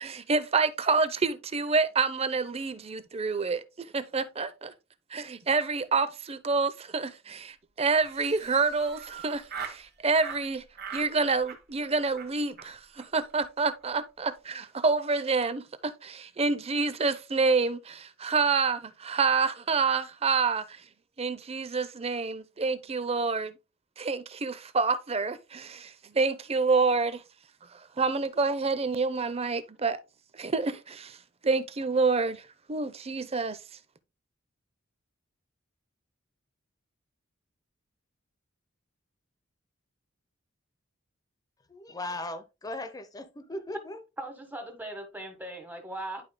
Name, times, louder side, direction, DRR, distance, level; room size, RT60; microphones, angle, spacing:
voice 1, 0.0-4.7 5.1-10.6 10.9-20.8 21.2-23.5 24.0-27.2 28.0-30.0 30.3-31.2 31.4-32.4 32.7-33.6, right 4 dB, 30° right, 0.6 m, -28 dB
Laughter, 8.0-9.8 10.2-10.4 10.7-11.1 11.4-11.9 12.2-12.3 12.6-12.7 13.0-13.1 13.3-13.5 13.7-14.0, right 6 dB, 50° right, 1.8 m, -41 dB
voice 2, 41.7-44.0, left 1 dB, 20° left, 0.7 m, -38 dB
voice 3, 44.2-46.2, right 1 dB, 10° right, 1.5 m, -39 dB
11.0 x 4.8 x 2.2 m
head